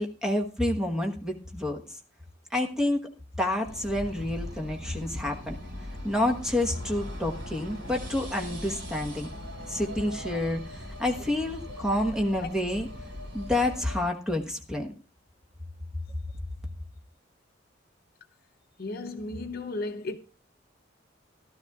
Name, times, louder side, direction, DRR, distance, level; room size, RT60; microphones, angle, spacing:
voice 1, 0.0-1.8 2.5-3.1 3.4-5.6 6.0-9.3 9.7-12.9 13.3-14.9, left 1 dB, 5° right, 1.2 m, -28 dB
sound 1, 3.6-14.0, left 1 dB, 70° right, 3.6 m, -40 dB
voice 2, 18.8-20.2, left 2 dB, 55° left, 0.7 m, -34 dB
15.5 x 12.0 x 2.4 m
head